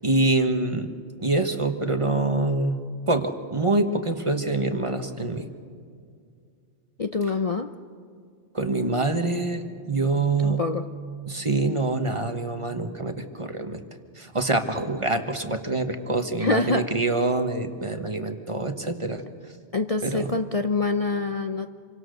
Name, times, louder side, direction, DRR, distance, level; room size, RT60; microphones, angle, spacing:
voice 1, 0.0-2.8 3.1-5.5 8.5-10.6 11.3-13.8 14.2-19.2 20.0-20.3, right 2 dB, 30° right, 7 dB, 1.3 m, -25 dB
voice 2, 7.0-7.7 10.4-10.8 16.4-16.9 19.7-21.7, left 3 dB, 40° left, 7 dB, 0.7 m, -25 dB
27.5 x 24.5 x 6.5 m, 2.2 s
omnidirectional pair, 1.2 m